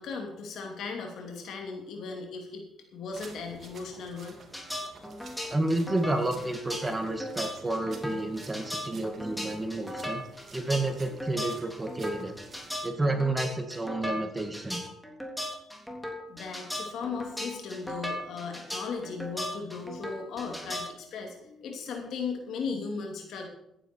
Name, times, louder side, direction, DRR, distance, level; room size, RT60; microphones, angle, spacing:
voice 1, 0.0-4.4 16.3-23.5, left 5 dB, 75° left, 2 dB, 2.9 m, -37 dB
sound 1, 3.1-12.8, right 4 dB, 50° right, 3.2 m, -52 dB
sound 2, 4.5-20.9, left 1 dB, 5° left, 3.4 m, -37 dB
voice 2, 5.5-10.2 10.5-12.3 12.8-14.8, right 2 dB, 15° right, 6 dB, 2.0 m, -30 dB
14.5 x 10.0 x 4.6 m, 0.80 s
cardioid pair, 90°, 0 cm